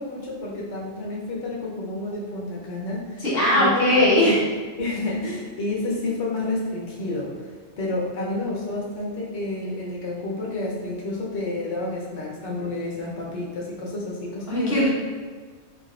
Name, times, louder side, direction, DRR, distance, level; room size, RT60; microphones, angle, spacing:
voice 1, 0.0-3.2 3.5-3.7 4.1-4.3 4.8-7.3 7.8-14.8, left 2 dB, 80° left, -4 dB, 1.0 m, -30 dB
voice 2, 3.2-4.4 14.5-14.9, left 1 dB, 60° left, -9 dB, 1.2 m, -19 dB
3.8 x 2.5 x 2.3 m, 1.5 s
omnidirectional pair, 1.2 m